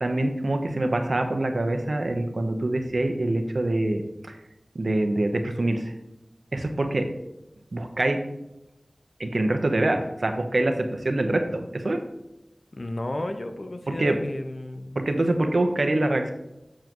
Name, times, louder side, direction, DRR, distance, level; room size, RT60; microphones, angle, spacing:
voice 1, 0.0-4.0 4.7-5.9 6.5-7.1 7.7-8.2 9.2-12.0 14.0-14.1 14.9-16.3, right 2 dB, 75° right, 5 dB, 0.9 m, -25 dB
voice 2, 12.7-15.0, left 1 dB, 55° left, 7 dB, 0.7 m, -33 dB
7.4 x 7.3 x 3.0 m, 0.93 s
wide cardioid pair, 55°, 0 cm